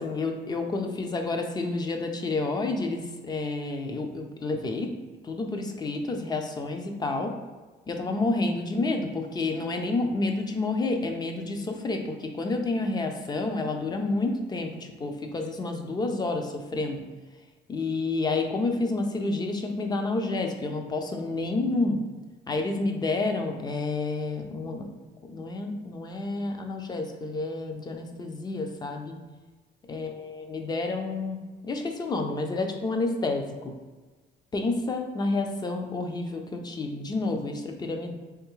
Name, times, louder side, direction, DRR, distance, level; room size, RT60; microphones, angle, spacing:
voice 1, 0.0-4.9 5.2-7.3 7.9-14.7 15.0-17.0 17.7-22.0 22.5-24.9 25.3-29.1 29.9-33.7 34.5-38.2, left 3 dB, 25° left, 4 dB, 0.5 m, -29 dB
3.4 x 3.1 x 3.1 m, 1.3 s
cardioid pair, 110°, 17 cm